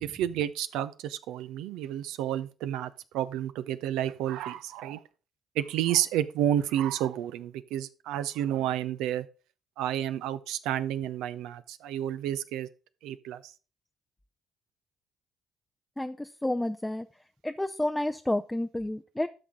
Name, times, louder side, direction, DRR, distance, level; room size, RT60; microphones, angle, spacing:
voice 1, 0.0-5.0 5.6-9.3 9.8-12.7 13.0-13.4, right 11 dB, 75° right, 0.6 m, -30 dB
voice 2, 16.0-17.1 17.4-19.3, left 1 dB, 10° left, 0.5 m, -30 dB
12.5 x 5.9 x 3.7 m
hypercardioid pair, 45°, 0 cm